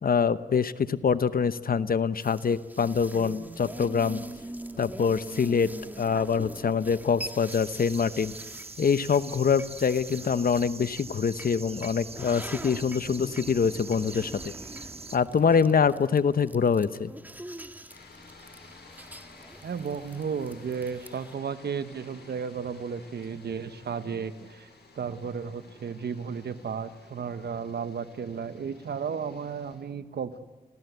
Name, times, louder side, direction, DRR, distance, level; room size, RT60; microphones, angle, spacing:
voice 1, 0.0-4.2 4.8-5.7 6.0-8.3 8.8-14.5 15.1-17.1, left 6 dB, 55° left, 14 dB, 0.9 m, -25 dB
sound 1, 2.2-21.3, right 1 dB, 10° right, 1.8 m, -44 dB
sound 2, 7.5-15.2, right 4 dB, 35° right, 1.1 m, -43 dB
sound 3, 17.9-29.8, left 3 dB, 80° left, 5.7 m, -53 dB
voice 2, 19.6-24.7 24.9-30.4, right 6 dB, 70° right, 12 dB, 1.2 m, -34 dB
29.0 x 15.5 x 8.1 m, 1.3 s
cardioid pair, 45°, 17 cm